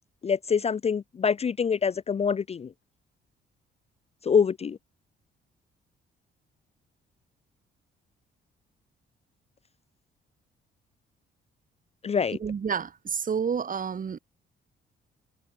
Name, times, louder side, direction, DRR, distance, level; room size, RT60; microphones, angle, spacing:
voice 1, 0.2-2.7 4.2-4.8 12.0-12.4, left 6 dB, 30° left, 0.5 m, -25 dB
voice 2, 12.4-14.2, right 6 dB, 45° right, 2.8 m, -29 dB
cardioid pair, 90°, 20 cm